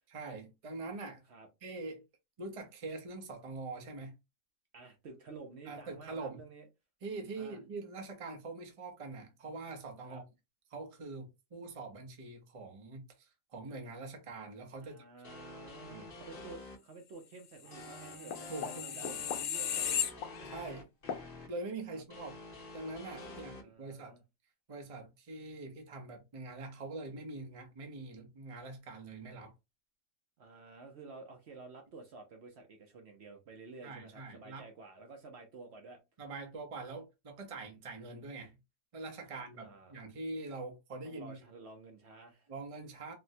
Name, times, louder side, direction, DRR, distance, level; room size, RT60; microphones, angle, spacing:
voice 1, 0.1-1.2 1.6-2.0 2.4-4.1 5.7-6.4 7.0-10.2 10.7-15.0 15.9-16.0 18.5-19.2 20.4-20.9 21.5-22.4 22.7-24.1 24.7-29.5 33.8-34.7 36.2-38.6 38.9-41.4 42.5-43.1, right 3 dB, 30° right, 0.8 m, -44 dB
voice 2, 4.7-6.7 7.3-7.6 10.0-10.2 14.8-19.1 19.3-20.1 21.9-22.0 23.3-24.2 30.4-36.0 39.3-40.0 41.0-42.5, right 3 dB, 60° right, 0.9 m, -51 dB
sound 1, 15.2-16.8 17.7-21.5 22.1-23.6, left 3 dB, 45° left, 1.1 m, -49 dB
Bowed string instrument, 17.6-20.6, right 7 dB, 90° right, 1.1 m, -56 dB
sound 2, 17.8-20.7 21.1-21.2, left 8 dB, 85° left, 1.0 m, -36 dB
4.1 x 2.1 x 2.7 m
omnidirectional pair, 1.4 m